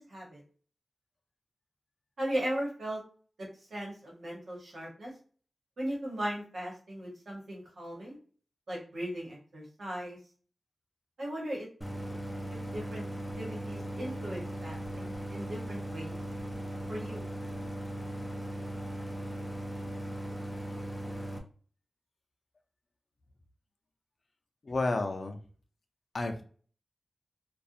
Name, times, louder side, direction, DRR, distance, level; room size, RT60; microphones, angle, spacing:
voice 1, 0.1-0.4 2.2-3.0 3.4-5.1 5.8-8.2 8.7-10.2 11.2-11.7 12.7-13.0 13.4-16.1 16.9-17.3, right 1 dB, 80° right, -3 dB, 1.1 m, -37 dB
Idling, 11.8-21.4, right 1 dB, 5° left, 0.5 m, -38 dB
voice 2, 24.6-25.4 26.1-26.4, left 2 dB, 55° left, 5 dB, 0.4 m, -31 dB
2.4 x 2.3 x 2.7 m, 0.42 s
wide cardioid pair, 80°, 0 cm